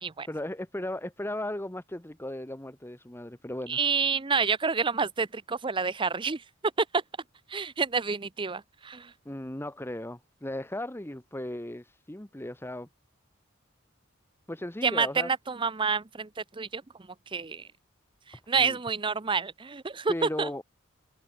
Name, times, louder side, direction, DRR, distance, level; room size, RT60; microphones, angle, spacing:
voice 1, 0.3-3.8 9.2-12.9 14.5-15.3 18.5-18.8 20.1-20.6, left 1 dB, 10° left, 1.2 m, -36 dB
voice 2, 3.7-6.4 6.8-7.0 7.5-9.1 14.8-16.8 17.3-17.7 18.3-20.5, right 5 dB, 25° right, 0.6 m, -28 dB
head